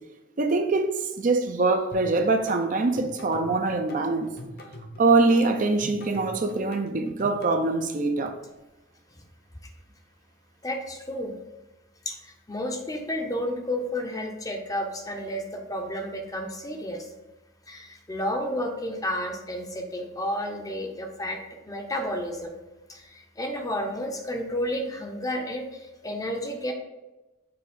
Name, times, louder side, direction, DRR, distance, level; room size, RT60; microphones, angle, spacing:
voice 1, 0.4-4.3 5.0-8.3, right 3 dB, 40° right, 0.5 m, -23 dB
sound 1, 1.9-7.5, left 1 dB, 50° left, 0.9 m, -44 dB
voice 2, 10.6-11.4 12.1-17.1 17.7-21.4 21.7-22.5 22.9-26.7, left 1 dB, 15° left, 0.7 m, -31 dB
6.8 x 3.1 x 5.1 m
head